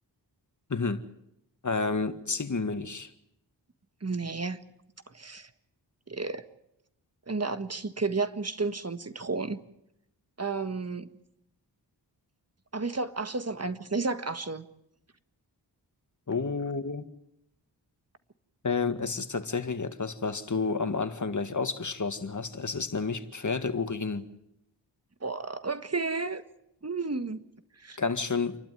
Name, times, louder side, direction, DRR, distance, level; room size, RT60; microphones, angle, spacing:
voice 1, 0.7-1.0 1.6-3.1 16.3-17.1 18.6-24.3 28.0-28.6, left 4 dB, 45° left, 1.9 m, -30 dB
voice 2, 4.0-4.6 5.1-5.5 6.1-6.4 7.3-9.6 10.4-11.1 12.7-14.6 25.2-26.4 26.8-27.4 27.8-28.0, right 4 dB, 35° right, 1.6 m, -32 dB
28.5 x 12.0 x 9.4 m
cardioid pair, 55°, 43 cm